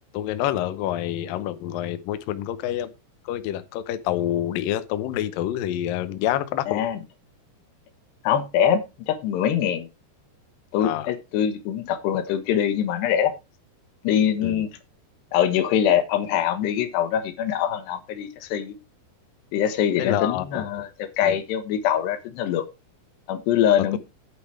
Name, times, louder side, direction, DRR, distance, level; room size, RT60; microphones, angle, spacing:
voice 1, 0.1-2.9 3.3-6.8 10.8-11.1 14.4-14.7 20.0-20.7 21.2-21.4, left 12 dB, 75° left, 2.3 m, -27 dB
voice 2, 6.7-7.0 8.2-9.9 10.7-13.3 14.1-14.7 15.3-18.8 19.5-22.6 23.3-24.0, left 9 dB, 90° left, 3.4 m, -23 dB
8.5 x 8.2 x 4.8 m
omnidirectional pair, 4.7 m